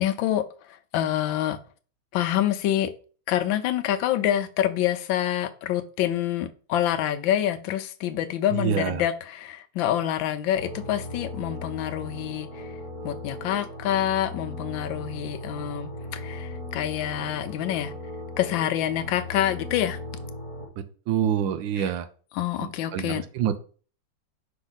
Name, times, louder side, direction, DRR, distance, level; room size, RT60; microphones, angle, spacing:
voice 1, 0.0-1.6 2.1-2.9 3.3-12.8 13.0-17.9 18.4-20.0 21.8-21.9 22.3-23.2, left 11 dB, 75° left, 1.3 m, -27 dB
voice 2, 8.5-9.0 20.8-22.0 22.6-23.6, right 8 dB, 75° right, 1.3 m, -27 dB
sound 1, 10.6-20.7, left 1 dB, 45° right, 2.3 m, -37 dB
5.6 x 5.3 x 4.0 m
omnidirectional pair, 2.2 m